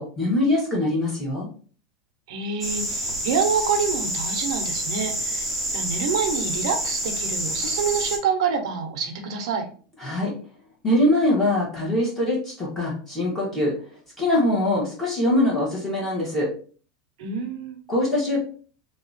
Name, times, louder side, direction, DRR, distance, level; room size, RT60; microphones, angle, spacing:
voice 1, 0.0-1.5 10.0-10.3 10.8-13.7 14.2-16.5 17.9-18.4, left 1 dB, 10° left, -5 dB, 1.2 m, -23 dB
voice 2, 2.3-5.4 5.7-9.7 17.2-17.8, right 6 dB, 70° right, 5 dB, 0.7 m, -27 dB
sound 1, 2.6-8.2, right 1 dB, 5° right, 0.8 m, -28 dB
2.8 x 2.4 x 3.9 m, 0.42 s
supercardioid pair, 170°, 3 cm